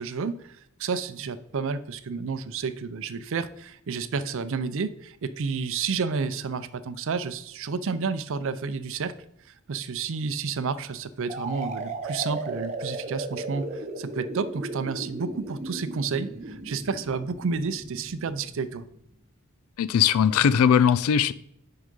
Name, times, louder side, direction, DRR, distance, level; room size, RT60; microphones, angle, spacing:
voice 1, 0.0-9.1 9.5-18.9, right 5 dB, 65° right, 13 dB, 0.5 m, -31 dB
sound 1, 11.3-19.0, right 2 dB, 35° right, 0.9 m, -36 dB
voice 2, 19.8-21.3, left 8 dB, 80° left, 17 dB, 0.4 m, -20 dB
6.3 x 4.8 x 5.3 m, 0.74 s
head